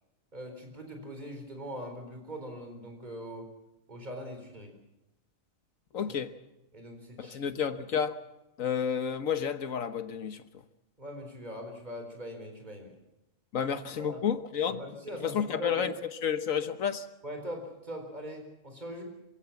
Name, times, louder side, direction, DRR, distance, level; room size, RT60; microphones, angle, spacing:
voice 1, 0.3-3.5 3.9-4.7 6.7-7.4 11.0-12.9 13.6-14.2 14.7-15.8 17.2-19.0, equal, 30° right, 4 dB, 4.3 m, -42 dB
voice 2, 5.9-6.3 7.2-8.1 8.6-10.4 13.5-14.8 15.2-17.1, left 7 dB, 80° left, 10 dB, 1.6 m, -30 dB
26.5 x 16.5 x 7.2 m, 0.93 s
omnidirectional pair, 1.4 m